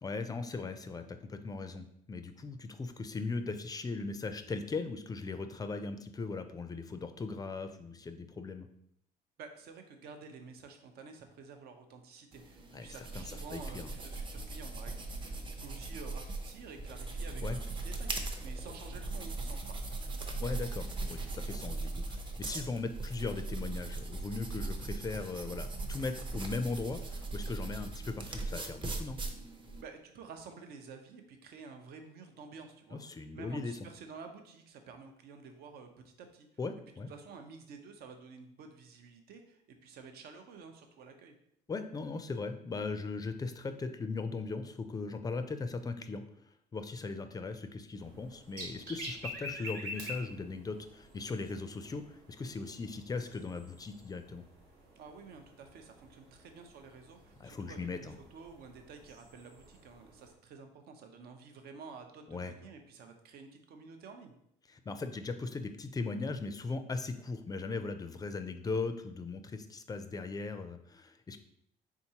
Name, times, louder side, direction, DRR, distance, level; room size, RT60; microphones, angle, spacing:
voice 1, 0.0-8.7 12.7-13.2 13.5-13.9 17.4-17.6 20.4-29.2 32.9-33.8 36.6-37.1 41.7-54.4 57.4-58.2 62.3-62.5 64.7-71.4, left 3 dB, 20° left, 8 dB, 0.4 m, -38 dB
voice 2, 9.4-19.9 29.8-36.5 37.1-41.3 55.0-64.3, right 5 dB, 70° right, 6 dB, 0.7 m, -51 dB
sound 1, 12.3-29.8, right 3 dB, 30° right, 0.6 m, -39 dB
sound 2, 48.0-60.3, equal, 85° right, 1.5 m, -48 dB
4.4 x 3.6 x 2.8 m, 0.73 s
cardioid pair, 110°, 17 cm